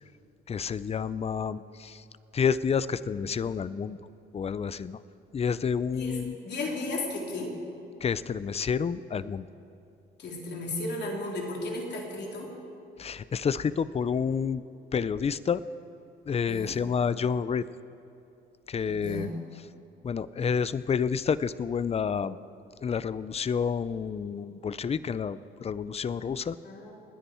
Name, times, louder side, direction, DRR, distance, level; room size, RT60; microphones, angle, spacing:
voice 1, 0.5-2.0 2.3-4.0 4.3-5.0 5.3-6.4 8.0-9.5 13.0-14.6 14.9-15.6 16.3-17.6 18.7-19.3 20.0-22.4 22.8-26.6, left 6 dB, 30° left, 16 dB, 0.5 m, -29 dB
voice 2, 6.4-7.5 10.2-12.5 16.5-16.8 18.8-19.4 26.6-27.0, left 2 dB, 60° left, -1 dB, 3.6 m, -34 dB
29.5 x 9.9 x 4.5 m, 2.8 s
cardioid pair, 90°, 20 cm